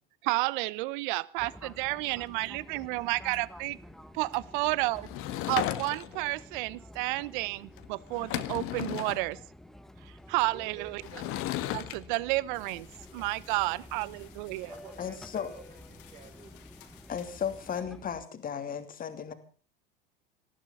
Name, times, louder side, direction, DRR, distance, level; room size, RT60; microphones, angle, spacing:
voice 1, 0.2-3.8 4.1-5.1 5.5-9.4 10.3-11.0 11.7-12.9 13.1-14.7, right 21 dB, 60° right, 21 dB, 0.9 m, -31 dB
Fixed-wing aircraft airplane, 1.4-18.2, left 1 dB, ahead, 1.1 m, -50 dB
Sliding door / Wood, 5.0-6.3 7.8-7.9 8.1-9.2 11.0-12.0, left 14 dB, 45° left, 1.7 m, -34 dB
voice 2, 10.5-11.4 14.7-16.5, right 5 dB, 25° right, 2 dB, 3.8 m, -50 dB
sound 1, 12.5-17.8, left 10 dB, 65° left, 3.3 m, -57 dB
voice 3, 15.0-15.5 17.1-19.3, left 7 dB, 30° left, 8 dB, 2.8 m, -35 dB
19.0 x 13.5 x 5.6 m, 0.41 s
hypercardioid pair, 90°, 29 cm